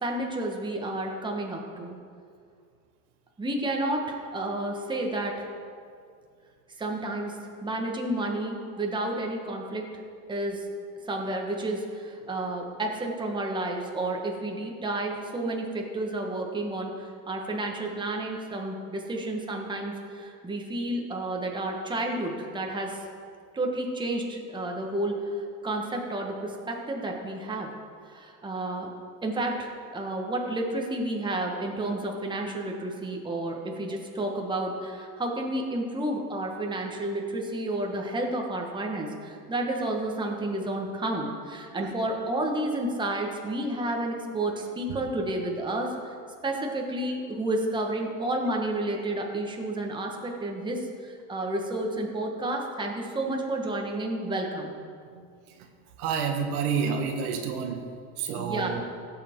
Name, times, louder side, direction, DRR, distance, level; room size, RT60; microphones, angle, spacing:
voice 1, 0.0-2.0 3.4-5.4 6.8-9.9 10.3-10.7 11.1-23.0 23.5-25.2 25.6-27.7 28.1-28.9 29.2-46.1 46.4-54.7 58.4-58.8, right 1 dB, 10° right, 1 dB, 1.3 m, -31 dB
voice 2, 56.0-57.8 58.2-58.8, right 6 dB, 80° right, 4 dB, 1.4 m, -28 dB
16.0 x 6.8 x 3.7 m, 2.2 s
supercardioid pair, 120°, 44 cm